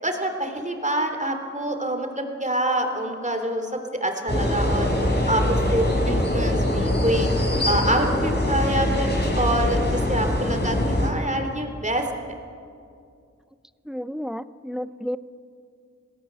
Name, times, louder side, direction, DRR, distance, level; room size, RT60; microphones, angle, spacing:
voice 1, 0.0-4.9 5.3-7.3 7.6-9.1 9.3-12.4, right 1 dB, 25° right, 4 dB, 3.3 m, -26 dB
sound 1, 4.3-11.1, left 1 dB, 35° left, 4.7 m, -23 dB
voice 2, 13.9-15.2, equal, ahead, 13 dB, 0.7 m, -31 dB
27.5 x 18.5 x 7.6 m, 2.4 s
wide cardioid pair, 60°, 31 cm